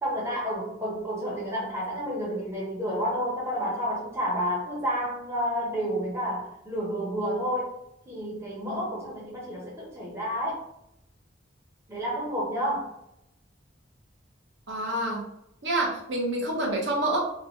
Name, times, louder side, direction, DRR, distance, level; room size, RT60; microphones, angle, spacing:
voice 1, 0.0-7.7 8.1-10.6 11.9-12.9, equal, 15° right, -5 dB, 0.7 m, -30 dB
voice 2, 14.7-15.2 15.6-17.2, right 1 dB, 60° right, -1 dB, 0.8 m, -27 dB
2.9 x 2.3 x 2.8 m, 0.80 s
head